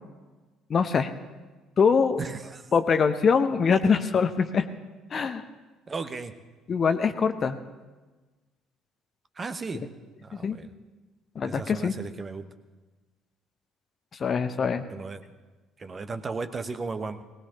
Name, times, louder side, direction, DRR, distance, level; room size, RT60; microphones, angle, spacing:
voice 1, 0.7-1.1 1.8-2.2 2.7-4.7 5.1-5.4 6.7-7.6 10.3-10.6 11.3-11.9 14.2-14.8, left 5 dB, 40° left, 10 dB, 0.9 m, -23 dB
voice 2, 2.2-2.7 5.9-6.3 9.4-9.9 10.2-10.7 11.4-12.5 14.9-15.2 15.8-17.2, right 4 dB, 30° right, 9 dB, 1.0 m, -35 dB
19.5 x 19.0 x 2.9 m, 1.3 s
figure-of-eight pair, 50°, 0 cm